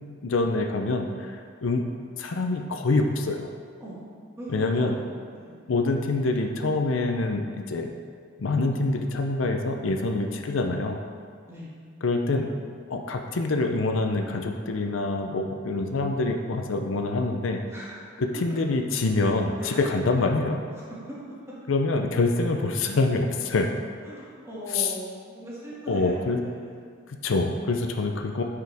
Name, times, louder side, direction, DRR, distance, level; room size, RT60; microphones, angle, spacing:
voice 1, 0.2-1.8 2.2-3.5 4.5-4.9 5.7-7.9 8.4-11.0 12.0-12.5 12.9-17.6 18.2-20.6 21.7-23.7 24.7-24.9 25.9-26.4 27.1-28.4, left 3 dB, 75° left, 4 dB, 0.5 m, -25 dB
voice 2, 4.4-4.9 5.3-5.6 11.5-11.7 17.7-17.9 19.6-19.9 20.7-21.3 22.4-22.5 24.0-27.3, right 1 dB, 15° right, -9 dB, 1.9 m, -40 dB
9.5 x 4.8 x 3.4 m, 2.1 s
head